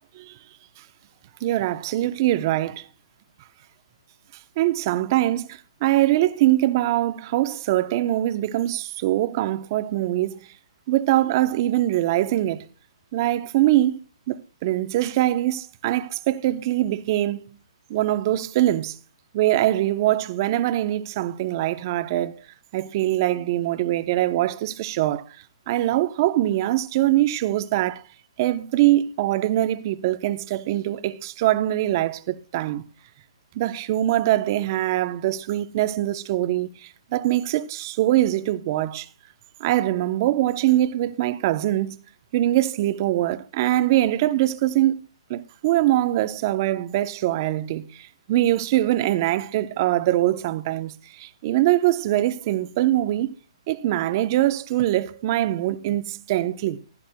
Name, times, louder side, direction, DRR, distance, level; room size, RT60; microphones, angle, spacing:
voice 1, 1.4-2.9 4.6-10.4 10.9-12.6 13.1-14.0 14.3-17.5 17.9-19.0 19.3-22.4 22.7-25.2 25.7-28.0 28.4-32.8 33.5-39.1 39.6-42.0 42.3-44.9 45.3-53.3 53.7-56.8, right 14 dB, 40° right, 0.8 m, -23 dB
15.5 x 13.5 x 2.2 m
hypercardioid pair, 145°, 3 cm